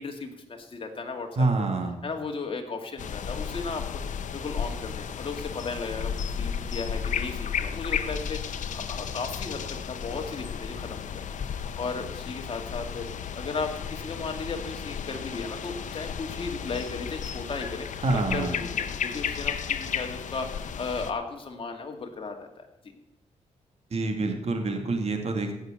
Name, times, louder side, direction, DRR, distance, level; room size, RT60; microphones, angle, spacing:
voice 1, 0.0-1.7 2.0-9.6 9.9-13.0 13.3-22.7, left 4 dB, 45° left, 3 dB, 2.3 m, -35 dB
voice 2, 1.4-2.0 18.0-18.6 23.9-25.5, right 3 dB, 55° right, 4 dB, 2.3 m, -26 dB
sound 1, 3.0-21.1, left 7 dB, 85° left, 0.9 m, -33 dB
16.5 x 6.5 x 6.8 m, 0.95 s
wide cardioid pair, 110°, 13 cm